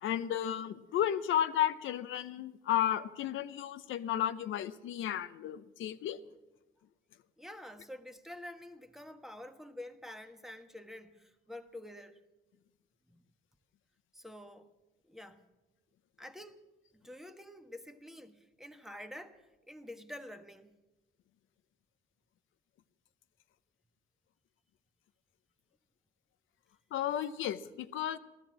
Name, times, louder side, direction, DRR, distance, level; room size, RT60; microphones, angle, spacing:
voice 1, 0.0-6.2 26.9-28.2, left 11 dB, 80° left, 0.7 m, -33 dB
voice 2, 7.4-12.2 13.1-13.2 14.1-14.7 15.0-15.4 16.2-16.6 16.9-20.7, left 1 dB, ahead, 1.4 m, -48 dB
15.0 x 13.0 x 7.5 m
cardioid pair, 90°, 20 cm